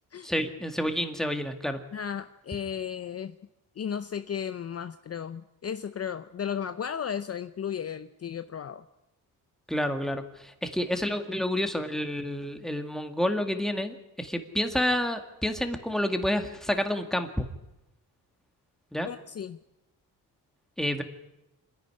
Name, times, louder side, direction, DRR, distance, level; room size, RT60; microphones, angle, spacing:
voice 1, 0.2-1.8 9.7-17.5 18.9-19.1 20.8-21.0, left 1 dB, ahead, 6 dB, 1.9 m, -29 dB
voice 2, 1.9-3.4 3.8-8.8 19.0-19.6, left 8 dB, 40° left, 11 dB, 0.7 m, -34 dB
27.0 x 10.5 x 9.9 m, 0.93 s
cardioid pair, 100°, 37 cm